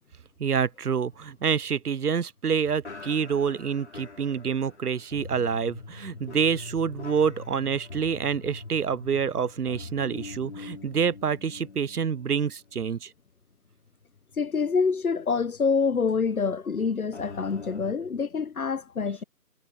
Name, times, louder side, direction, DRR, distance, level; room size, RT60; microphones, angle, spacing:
voice 1, 0.4-13.1, right 6 dB, 70° right, 0.7 m, -27 dB
sound 1, 1.1-2.4 2.8-13.2 13.5-13.8 14.4-14.5 17.1-17.9, left 3 dB, 45° left, 2.8 m, -43 dB
voice 2, 14.4-19.2, left 5 dB, 60° left, 0.8 m, -26 dB
figure-of-eight pair, 170°, 48 cm